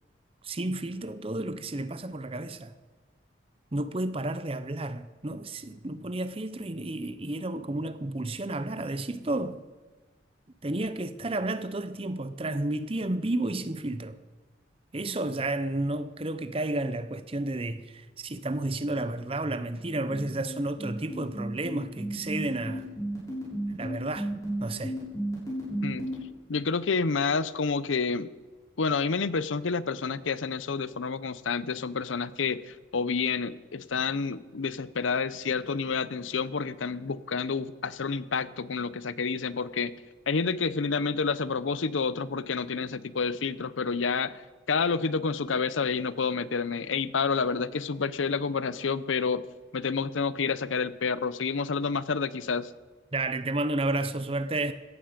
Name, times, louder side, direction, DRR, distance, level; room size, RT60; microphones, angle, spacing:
voice 1, 0.4-2.7 3.7-9.6 10.6-14.2 14.9-22.9 23.8-24.3 24.6-25.0 53.1-54.7, right 2 dB, 30° right, 0.7 m, -31 dB
sound 1, 20.1-26.1, right 1 dB, 20° left, 6.9 m, -33 dB
voice 2, 26.5-28.3 28.8-39.9 40.3-44.4 44.7-49.4 49.7-52.7, left 5 dB, 85° left, 0.7 m, -29 dB
16.5 x 14.5 x 5.2 m
head